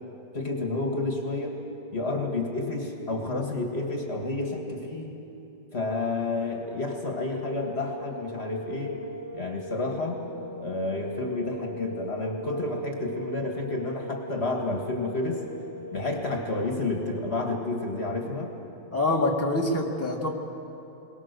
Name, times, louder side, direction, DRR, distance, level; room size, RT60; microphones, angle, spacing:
voice 1, 0.3-1.6 1.9-5.2 5.7-9.0 9.3-10.2 10.6-15.4 15.9-18.5, left 2 dB, 45° left, 2 dB, 1.9 m, -30 dB
sound 1, 6.3-17.4, equal, 55° right, 4.8 m, -41 dB
voice 2, 18.9-20.3, left 2 dB, 10° left, -2 dB, 1.8 m, -25 dB
22.5 x 20.0 x 6.7 m, 2.9 s
omnidirectional pair, 1.5 m